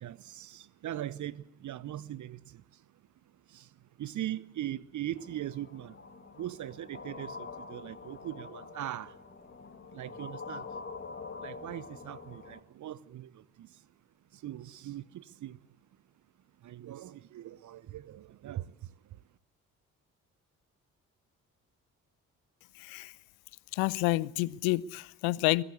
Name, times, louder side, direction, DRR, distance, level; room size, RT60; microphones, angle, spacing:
voice 1, 0.0-2.4 3.5-3.6 4.0-5.9 6.4-9.1 9.9-10.7 11.4-13.3 13.6-13.7 14.4-15.6 16.6-18.6, right 12 dB, 45° right, 0.9 m, -40 dB
sound 1, 5.2-12.6, left 4 dB, 30° left, 2.3 m, -45 dB
voice 2, 22.8-23.1 23.7-25.6, left 20 dB, 65° left, 0.7 m, -29 dB
23.0 x 16.5 x 8.4 m
figure-of-eight pair, 45°, 41 cm